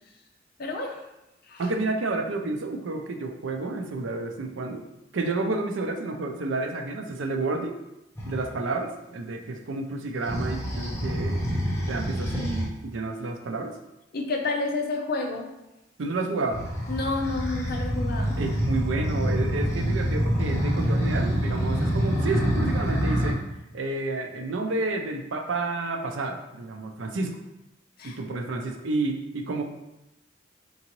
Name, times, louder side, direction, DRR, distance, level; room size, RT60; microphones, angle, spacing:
voice 1, 0.6-1.0 1.5-1.7 14.1-15.5 16.9-18.3 28.0-28.2, left 3 dB, 55° left, 1 dB, 0.6 m, -29 dB
voice 2, 1.6-4.8 5.1-7.8 8.2-11.4 11.9-13.8 16.0-16.6 18.4-23.4 23.7-27.3 28.0-29.6, right 3 dB, 85° right, 4 dB, 0.5 m, -30 dB
sound 1, 8.2-8.5 10.3-12.7 16.5-23.3, equal, 15° left, 0.7 m, -26 dB
4.0 x 3.7 x 3.0 m, 0.94 s
head